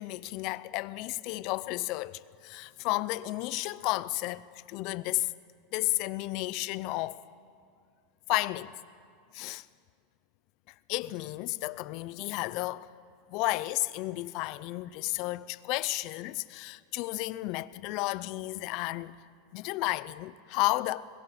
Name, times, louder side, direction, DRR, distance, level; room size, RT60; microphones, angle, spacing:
voice 1, 0.0-5.3 5.7-7.2 8.3-8.7 9.3-9.6 10.9-12.9 13.3-19.2 19.5-21.1, left 19 dB, 50° left, 0.6 m, -32 dB
23.0 x 22.0 x 5.9 m
supercardioid pair, 150°, 0 cm